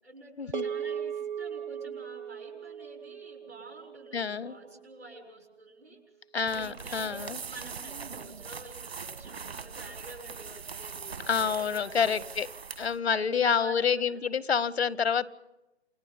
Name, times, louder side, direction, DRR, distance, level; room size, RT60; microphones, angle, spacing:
voice 1, 0.0-6.0 6.4-12.2 13.0-14.3, right 2 dB, 85° right, 3 dB, 7.2 m, -48 dB
sound 1, 0.5-5.0, right 8 dB, 45° right, 0.7 m, -38 dB
voice 2, 4.1-4.5 6.3-7.4 11.3-12.5 12.8-15.3, left 6 dB, 70° left, 20 dB, 0.9 m, -28 dB
sound 2, 6.4-13.0, right 6 dB, 65° right, 1.5 m, -41 dB
29.5 x 21.0 x 5.7 m, 0.98 s
figure-of-eight pair, 140°, 33 cm